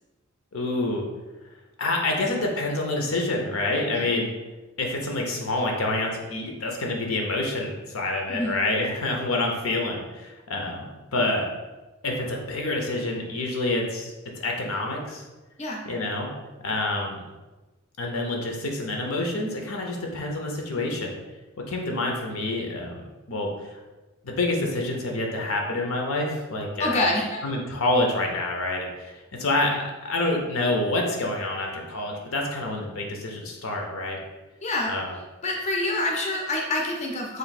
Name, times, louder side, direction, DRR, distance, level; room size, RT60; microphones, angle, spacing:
voice 1, 0.5-1.1 1.8-4.3 4.8-11.5 12.0-15.2 15.8-16.3 16.6-17.2 18.0-21.1 21.7-23.0 23.3-23.8 24.2-27.0 27.4-34.2 34.9-35.1, left 2 dB, 80° left, 1 dB, 0.7 m, -27 dB
voice 2, 26.8-27.4 34.6-34.9 35.4-37.4, left 2 dB, 30° left, 0 dB, 0.5 m, -26 dB
3.2 x 2.6 x 4.1 m, 1.1 s
head